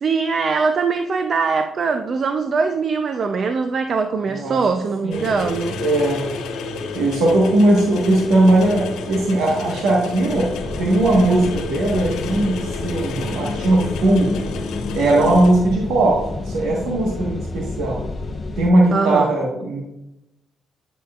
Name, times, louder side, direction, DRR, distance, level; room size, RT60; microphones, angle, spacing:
voice 1, 0.0-5.8 18.9-19.4, right 4 dB, 50° right, 7 dB, 0.6 m, -21 dB
voice 2, 5.0-5.3 5.8-6.3 6.9-10.5 10.8-14.4 14.9-18.0 18.6-19.8, right 1 dB, 85° right, -2 dB, 1.5 m, -18 dB
sound 1, 5.1-15.5, left 4 dB, 90° left, 1.2 m, -30 dB
sound 2, 10.3-18.7, left 3 dB, 35° left, 0.6 m, -30 dB
11.0 x 6.9 x 2.5 m, 0.87 s
cardioid pair, 90°, 0 cm